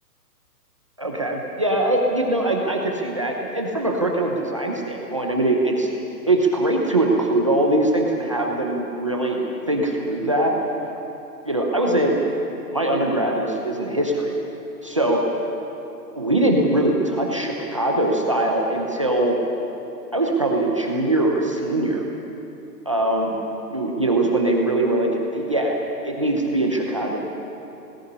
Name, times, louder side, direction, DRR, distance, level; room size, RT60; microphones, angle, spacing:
voice 1, 1.0-5.9 6.3-9.4 9.7-10.5 11.4-12.2 12.7-14.3 14.8-15.2 16.2-19.4 20.1-22.1 22.9-23.4 23.7-25.8 26.0-27.2, right 1 dB, 20° right, -1 dB, 0.8 m, -22 dB
18.5 x 16.5 x 9.8 m, 2.9 s
hypercardioid pair, 180°, 50 cm